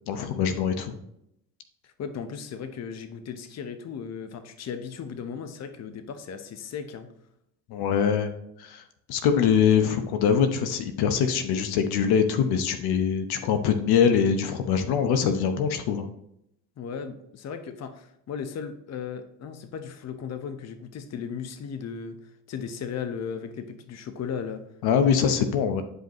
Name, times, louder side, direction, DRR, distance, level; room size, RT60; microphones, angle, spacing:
voice 1, 0.1-0.9 7.7-8.3 8.6-8.8 9.1-16.1 24.8-25.8, left 7 dB, 65° left, 8 dB, 1.0 m, -23 dB
voice 2, 1.8-7.1 16.8-22.2 22.5-24.6, left 6 dB, 40° left, 9 dB, 0.9 m, -36 dB
10.0 x 5.2 x 3.0 m, 0.76 s
supercardioid pair, 75°, 41 cm